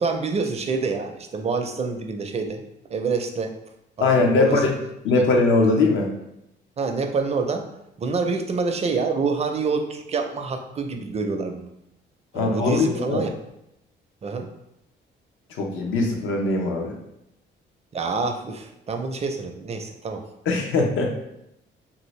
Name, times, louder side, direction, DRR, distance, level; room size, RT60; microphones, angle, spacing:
voice 1, 0.0-2.6 2.9-3.6 4.0-4.6 5.2-5.3 6.8-7.7 8.0-11.7 12.3-13.3 14.2-14.5 17.9-20.2, right 4 dB, 30° right, 5 dB, 0.4 m, -27 dB
voice 2, 4.0-4.7 5.0-6.1 12.3-13.2 15.5-17.0 20.5-21.2, left 3 dB, 80° left, 1 dB, 0.7 m, -21 dB
2.7 x 2.6 x 3.1 m, 0.83 s
cardioid pair, 90°, 20 cm